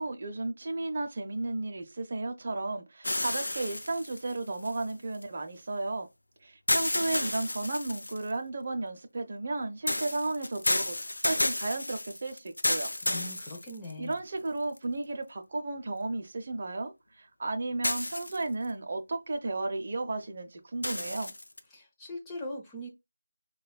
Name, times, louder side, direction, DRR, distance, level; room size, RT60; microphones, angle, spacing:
voice 1, 0.0-6.1 6.4-12.9 14.0-21.3, right 2 dB, 35° right, 0.7 m, -34 dB
sound 1, 3.0-5.2 6.7-8.3 9.9-14.1 14.8-14.9 17.8-18.7 20.8-21.6, left 1 dB, 60° left, 0.5 m, -31 dB
voice 2, 13.0-14.2 21.7-22.9, left 1 dB, 10° left, 0.8 m, -40 dB
6.4 x 2.4 x 2.2 m
figure-of-eight pair, 160°, 0 cm